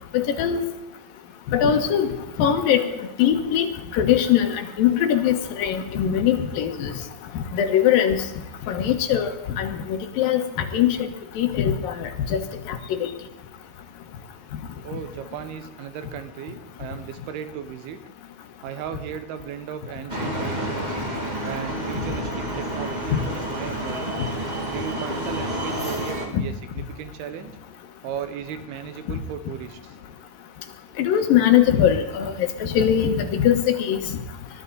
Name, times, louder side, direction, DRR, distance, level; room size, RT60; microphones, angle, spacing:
voice 1, 0.1-0.6 1.5-2.1 2.4-2.8 3.2-3.7 3.9-6.9 7.3-8.2 8.7-10.4 10.7-11.1 11.4-12.4 12.7-13.1 26.3-26.4 31.0-34.0, left 9 dB, 70° left, 5 dB, 3.0 m, -21 dB
voice 2, 14.8-18.0 18.6-21.0 21.4-24.2 24.7-27.5 28.0-30.0, right 9 dB, 85° right, 10 dB, 3.1 m, -36 dB
sound 1, 20.1-26.3, right 1 dB, 15° right, 1.8 m, -29 dB
21.0 x 13.0 x 4.1 m, 0.97 s
omnidirectional pair, 4.4 m